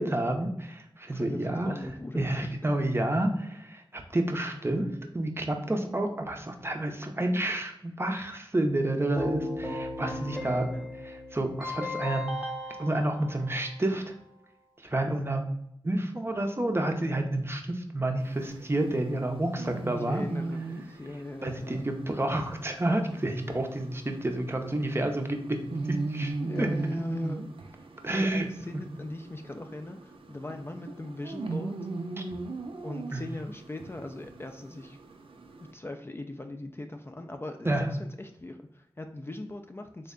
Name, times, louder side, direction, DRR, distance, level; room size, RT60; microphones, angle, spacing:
voice 1, 0.0-1.7 2.1-10.7 11.0-12.2 12.8-14.0 14.8-15.4 15.8-20.2 21.4-25.6 25.9-26.7 28.0-28.5 28.7-28.8 32.2-32.3 33.1-33.2 37.6-37.9, right 1 dB, 25° right, 4 dB, 0.5 m, -29 dB
voice 2, 1.1-2.5 10.3-10.9 20.0-21.8 26.4-27.7 28.1-31.8 32.8-35.0 35.7-40.1, left 1 dB, 25° left, 5 dB, 0.3 m, -39 dB
Keyboard (musical), 9.2-14.1, left 1 dB, 10° right, 0.9 m, -36 dB
sound 1, 18.2-35.7, right 3 dB, 75° right, 0.4 m, -39 dB
3.4 x 2.1 x 3.6 m, 0.77 s
cardioid pair, 45°, 9 cm